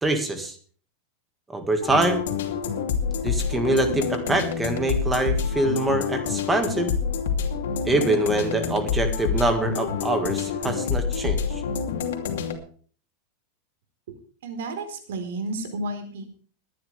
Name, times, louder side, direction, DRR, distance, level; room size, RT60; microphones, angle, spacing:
voice 1, 0.0-0.6 1.5-2.3 3.2-6.9 7.9-11.6, right 2 dB, 10° right, 7 dB, 1.9 m, -24 dB
sound 1, 1.8-12.6, left 6 dB, 90° left, 2.8 m, -27 dB
voice 2, 14.4-16.4, right 2 dB, 80° right, 7 dB, 4.3 m, -32 dB
22.0 x 10.5 x 3.4 m, 0.43 s
supercardioid pair, 160°, 0 cm